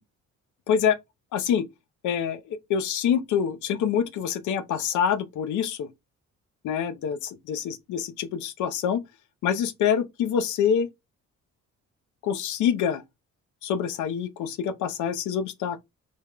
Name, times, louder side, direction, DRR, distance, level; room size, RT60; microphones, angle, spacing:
voice 1, 1.3-1.7 2.0-5.9 6.6-9.0 9.4-10.9 12.2-13.0 13.6-15.8, left 8 dB, 75° left, 0.5 m, -26 dB
3.3 x 2.1 x 2.3 m
cardioid pair, 90°, 30 cm